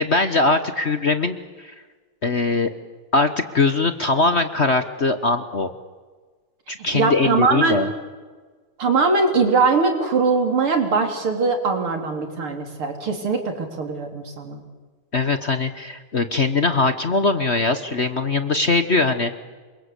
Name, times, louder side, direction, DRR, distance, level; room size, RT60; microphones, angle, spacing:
voice 1, 0.0-1.7 2.2-2.7 3.1-5.7 6.7-7.9 15.1-19.4, left 3 dB, 40° left, 10 dB, 1.1 m, -21 dB
voice 2, 6.9-7.8 8.8-14.6, right 4 dB, 85° right, 4 dB, 4.3 m, -21 dB
28.0 x 23.5 x 8.3 m, 1.4 s
omnidirectional pair, 2.3 m